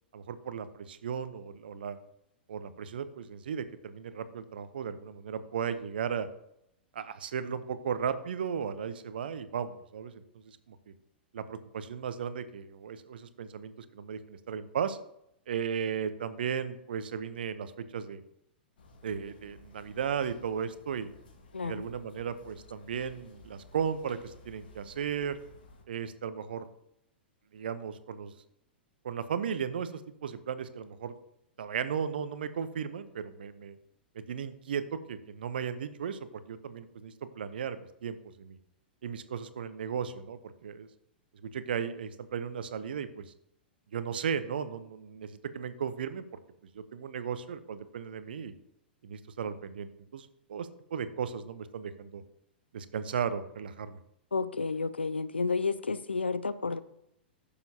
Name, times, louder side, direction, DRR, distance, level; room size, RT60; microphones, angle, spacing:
voice 1, 0.1-2.0 2.5-6.3 6.9-10.9 11.3-15.0 15.5-18.2 19.0-21.1 21.6-25.4 25.9-26.7 27.5-28.3 29.0-31.1 31.6-33.8 34.1-38.6 39.0-40.9 41.4-43.3 43.9-46.2 46.7-48.5 49.0-52.2 52.7-54.0, right 7 dB, 65° right, 13 dB, 0.8 m, -36 dB
sound 1, 18.8-25.8, left 3 dB, 60° left, 1.7 m, -56 dB
voice 2, 21.5-21.8 54.3-56.8, left 4 dB, 80° left, 14 dB, 0.5 m, -31 dB
15.0 x 6.8 x 2.8 m, 0.78 s
figure-of-eight pair, 105°, 6 cm